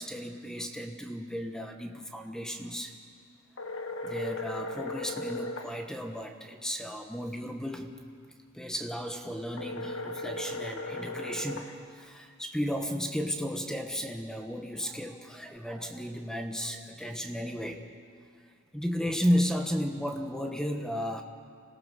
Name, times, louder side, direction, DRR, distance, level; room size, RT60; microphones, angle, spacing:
voice 1, 0.0-2.9 4.0-7.9 8.5-17.8 18.7-21.2, equal, 5° left, 5 dB, 1.1 m, -34 dB
sound 1, 3.6-5.7 9.6-11.7, left 2 dB, 65° left, 1.5 m, -37 dB
26.5 x 18.0 x 6.4 m, 2.1 s
head